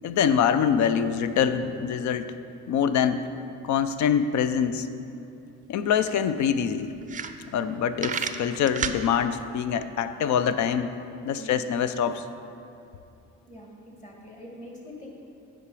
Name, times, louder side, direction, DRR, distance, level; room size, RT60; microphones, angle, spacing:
voice 1, 0.0-2.3 2.7-3.2 3.6-4.9 5.7-6.9 7.5-10.9 11.2-12.3, left 8 dB, 70° left, 12 dB, 0.5 m, -24 dB
sound 1, 5.6-5.7 6.0-6.1 6.6-6.7 7.0-7.7 8.0-9.0, right 7 dB, 25° right, 0.4 m, -30 dB
voice 2, 13.5-15.1, left 1 dB, 25° left, -2 dB, 1.9 m, -44 dB
8.7 x 5.2 x 4.8 m, 2.7 s
cardioid pair, 90°, 30 cm